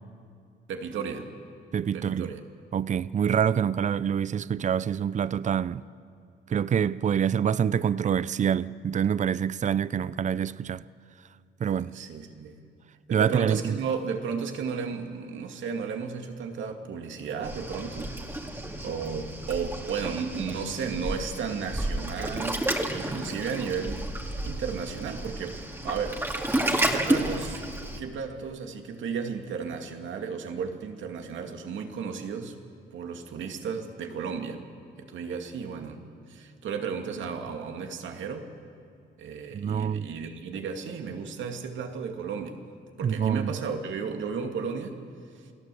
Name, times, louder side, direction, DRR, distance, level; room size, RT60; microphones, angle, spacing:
voice 1, 0.7-1.3 1.9-2.4 11.8-12.6 13.1-18.1 18.8-24.1 24.4-27.6 28.0-32.6 32.9-34.6 35.0-36.0 36.3-38.5 39.2-42.6 43.0-45.0, right 6 dB, 75° right, 2.3 m, -34 dB
voice 2, 1.7-2.3 2.7-5.8 6.5-10.8 11.6-11.9 13.1-13.8 39.5-40.1 43.0-43.5, right 8 dB, 40° right, 0.6 m, -26 dB
Waves surf, 17.4-28.0, right 1 dB, 10° right, 2.4 m, -31 dB
29.0 x 17.0 x 7.8 m
cardioid pair, 90°, 20 cm